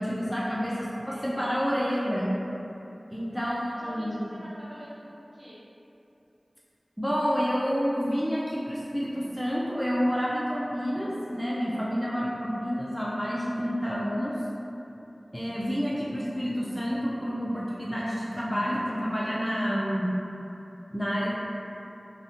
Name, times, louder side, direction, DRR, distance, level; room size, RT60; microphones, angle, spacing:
voice 1, 0.0-0.7 1.1-2.3 3.1-4.2 7.0-14.3 15.3-20.1 20.9-21.3, equal, ahead, -7 dB, 0.3 m, -29 dB
voice 2, 0.6-1.4 3.3-5.6, equal, 50° right, -10 dB, 0.8 m, -46 dB
2.5 x 2.0 x 2.8 m, 2.8 s
wide cardioid pair, 45°, 0 cm